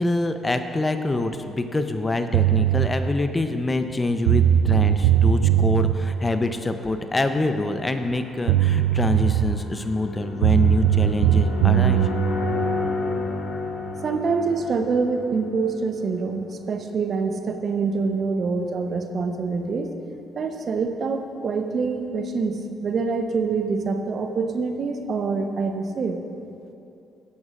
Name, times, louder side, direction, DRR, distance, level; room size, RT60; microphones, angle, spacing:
voice 1, 0.0-12.1, left 2 dB, 25° left, 8 dB, 0.8 m, -25 dB
sound 1, 2.3-2.9 3.9-4.0 4.3-6.0 8.1-8.2 8.5-9.7 10.4-12.1, right 11 dB, 70° right, 0.3 m, -19 dB
sound 2, 5.3-16.1, left 1 dB, 85° left, 1.6 m, -32 dB
voice 2, 14.0-19.9 20.4-26.2, right 4 dB, 50° right, 6 dB, 1.0 m, -25 dB
17.0 x 12.5 x 2.6 m, 2.8 s
figure-of-eight pair, 45°, 0 cm